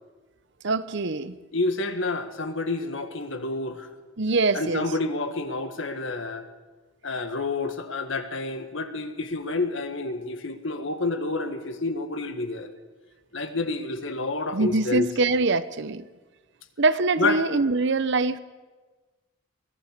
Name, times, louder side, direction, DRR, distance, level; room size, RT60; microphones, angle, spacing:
voice 1, 0.6-1.4 4.2-4.8 14.5-16.0 16.8-18.4, right 3 dB, 55° right, 14 dB, 0.8 m, -23 dB
voice 2, 1.5-3.9 4.5-6.5 7.0-12.7 13.3-15.1 17.2-17.4, left 3 dB, 60° left, 8 dB, 1.7 m, -29 dB
23.0 x 17.5 x 6.8 m, 1.3 s
head